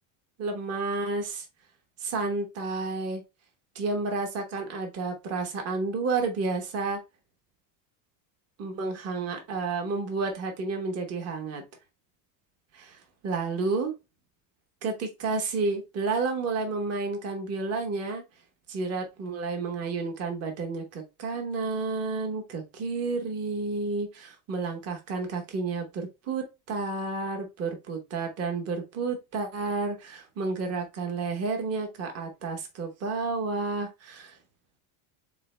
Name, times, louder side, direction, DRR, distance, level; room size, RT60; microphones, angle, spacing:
voice 1, 0.4-1.4 2.0-3.2 3.7-7.0 8.6-11.6 12.7-13.0 13.2-13.9 14.8-18.2 18.7-34.4, right 4 dB, 30° right, 1.2 m, -31 dB
3.9 x 3.8 x 3.3 m
cardioid pair, 160°, 48 cm